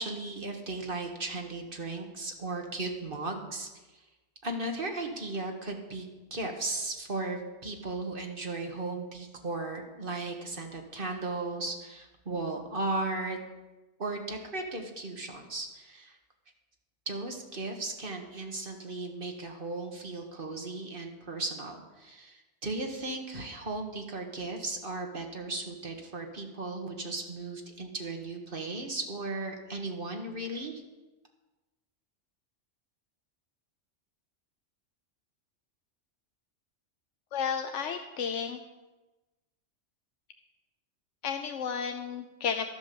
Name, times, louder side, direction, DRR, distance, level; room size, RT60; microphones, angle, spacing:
voice 1, 0.0-3.7 4.4-13.4 14.0-16.2 17.1-30.8, right 2 dB, 50° right, 3 dB, 1.8 m, -36 dB
voice 2, 37.3-38.6 41.2-42.7, left 6 dB, 90° left, 6 dB, 1.1 m, -32 dB
13.0 x 8.1 x 7.0 m, 1.1 s
omnidirectional pair, 1.2 m